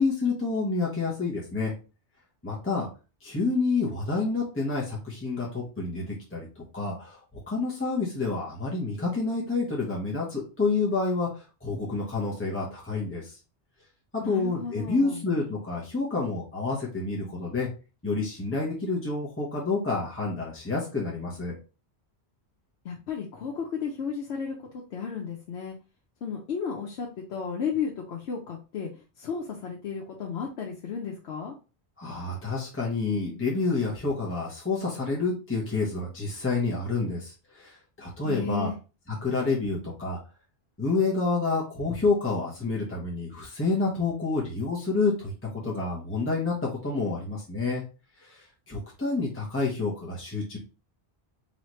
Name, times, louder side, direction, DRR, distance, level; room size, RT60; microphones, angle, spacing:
voice 1, 0.0-1.7 2.4-2.9 3.2-7.2 7.5-13.3 14.1-17.7 18.0-21.5 32.0-38.7 39.2-40.2 40.8-47.8 48.2-50.6, left 3 dB, 10° left, -5 dB, 1.0 m, -28 dB
voice 2, 14.2-15.2 22.8-24.6 24.9-25.8 26.2-28.9 29.2-31.5 38.2-38.8, left 6 dB, 90° left, -1 dB, 1.0 m, -33 dB
4.0 x 3.1 x 3.1 m, 0.32 s
omnidirectional pair, 1.1 m